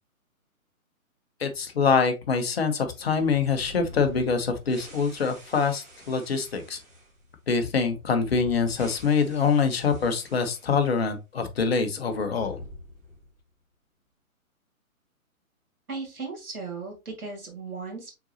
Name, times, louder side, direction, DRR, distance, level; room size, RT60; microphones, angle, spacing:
voice 1, 1.4-6.8 7.5-12.6, left 5 dB, 45° left, 0.9 m, -25 dB
sound 1, 2.9-11.1 11.4-11.5 12.1-13.5, left 1 dB, 15° right, 1.6 m, -47 dB
voice 2, 15.9-18.2, right 4 dB, 80° right, 2.1 m, -36 dB
4.6 x 3.9 x 2.7 m
figure-of-eight pair, 135°, 43 cm